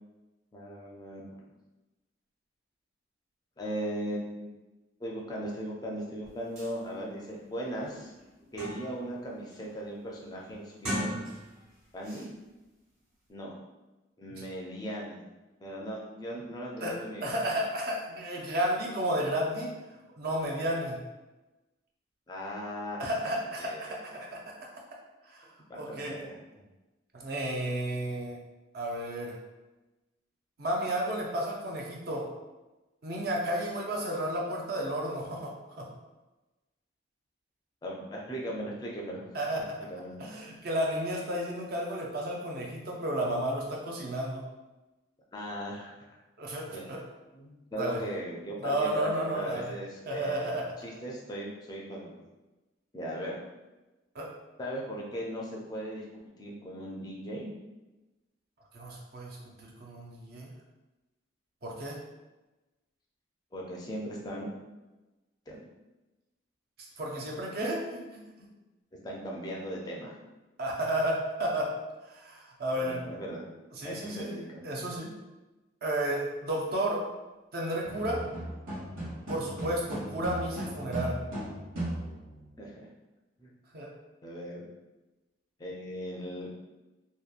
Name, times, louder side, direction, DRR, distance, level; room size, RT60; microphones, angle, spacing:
voice 1, 0.5-1.4 3.6-4.5 5.0-8.1 8.5-11.2 11.9-12.3 13.3-13.5 14.2-15.2 15.6-17.3 22.3-24.2 25.7-26.4 37.8-39.2 39.9-40.2 45.3-45.9 46.7-46.9 47.3-52.2 52.9-53.4 54.6-56.0 56.4-57.5 63.5-64.5 65.5-65.6 68.9-70.1 72.8-73.5 73.8-74.6 82.6-82.9 83.4-83.5 84.2-84.6 85.6-86.5, equal, 20° left, -3 dB, 0.4 m, -38 dB
sound 1, 6.2-6.3 6.6-6.7 7.3-7.4 7.8-9.1 9.5-9.9 10.7-11.7 12.0-12.3, equal, 35° right, 1.1 m, -37 dB
voice 2, 16.8-19.7 20.2-21.0 23.0-24.4 25.2-25.5 25.7-26.2 27.1-28.4 28.7-29.4 30.6-32.3 33.0-35.9 39.3-39.7 40.2-44.4 46.4-47.0 47.8-48.0 48.6-49.7 50.1-50.6 54.1-54.3 58.7-60.5 61.6-62.0 67.0-68.2 70.6-71.7 72.0-73.0 73.8-75.1 75.8-77.0 77.5-78.2 79.3-81.2 83.7-83.9, right 1 dB, 50° right, -2 dB, 0.5 m, -32 dB
sound 2, 77.8-82.5, right 1 dB, 85° right, 1.2 m, -37 dB
2.8 x 2.2 x 2.4 m, 1.1 s
head